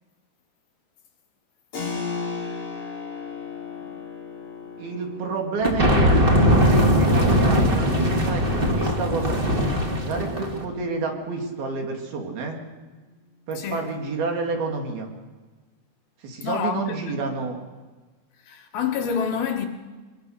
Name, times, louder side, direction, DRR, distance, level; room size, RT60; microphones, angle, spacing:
Keyboard (musical), 1.7-12.1, left 5 dB, 30° left, 6.5 m, -38 dB
voice 1, 4.8-9.7 10.0-12.6 13.5-15.1 16.2-17.6, right 4 dB, 60° right, 4.1 m, -29 dB
sound 1, 5.6-10.6, equal, 40° right, 0.7 m, -20 dB
voice 2, 13.6-13.9 16.4-17.2 18.4-19.7, left 7 dB, 65° left, 2.9 m, -28 dB
24.0 x 22.0 x 6.6 m
omnidirectional pair, 5.0 m